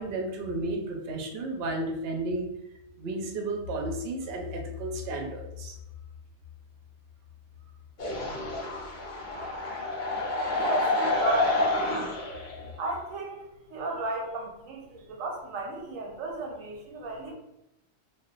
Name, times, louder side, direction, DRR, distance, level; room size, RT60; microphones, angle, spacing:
voice 1, 0.0-2.5 3.0-5.8, right 1 dB, 60° right, 2 dB, 0.7 m, -32 dB
sound 1, 8.0-12.7, left 2 dB, 45° left, 0.8 m, -28 dB
voice 2, 10.2-11.5 12.8-13.4 13.7-17.3, right 2 dB, 90° right, 1 dB, 1.1 m, -34 dB
2.3 x 2.2 x 3.7 m, 0.90 s
omnidirectional pair, 1.3 m